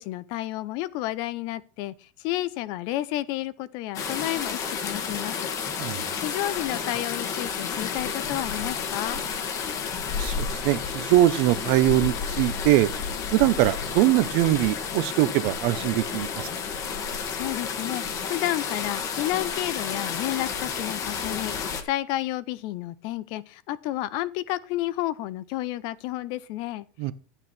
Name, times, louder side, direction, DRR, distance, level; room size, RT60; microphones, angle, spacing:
voice 1, 0.0-5.5 6.2-9.2 17.3-26.9, left 15 dB, 50° left, 0.7 m, -31 dB
sound 1, 3.9-21.8, left 6 dB, 35° left, 1.4 m, -31 dB
voice 2, 10.2-12.9 13.3-16.5 27.0-27.1, right 15 dB, 55° right, 0.8 m, -22 dB
12.0 x 8.9 x 4.4 m
supercardioid pair, 155°, 10 cm